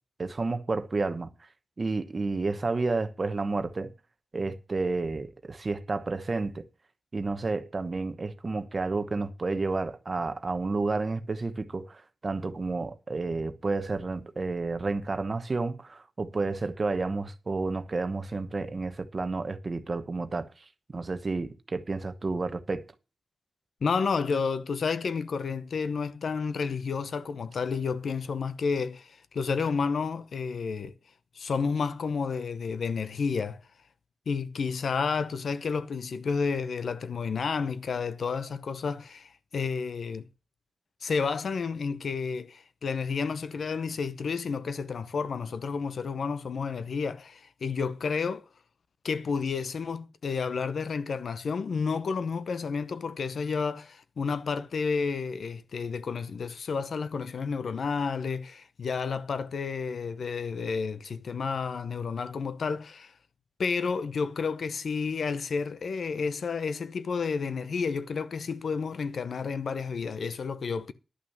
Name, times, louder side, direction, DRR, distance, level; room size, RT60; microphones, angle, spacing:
voice 1, 0.2-1.3 1.8-3.9 4.3-6.6 7.1-22.8, right 3 dB, 35° right, 1.0 m, -31 dB
voice 2, 23.8-30.9 31.4-33.6 34.3-40.3 41.0-48.4 49.0-63.1 63.6-70.9, left 5 dB, 80° left, 0.8 m, -31 dB
11.5 x 5.9 x 7.2 m
wide cardioid pair, 170°, 0 cm